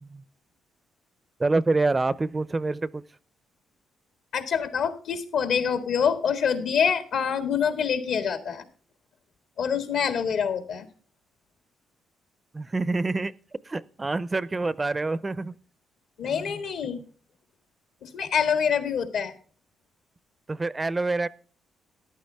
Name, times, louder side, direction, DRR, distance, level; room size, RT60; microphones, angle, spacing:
voice 1, 1.4-3.0 12.5-13.3 13.7-15.6 20.5-21.3, right 3 dB, 20° right, 20 dB, 0.5 m, -26 dB
voice 2, 4.3-8.6 9.6-10.9 16.2-17.0 18.0-19.3, left 7 dB, 70° left, 10 dB, 1.8 m, -26 dB
14.0 x 11.0 x 3.4 m, 0.42 s
cardioid pair, 90°, 0 cm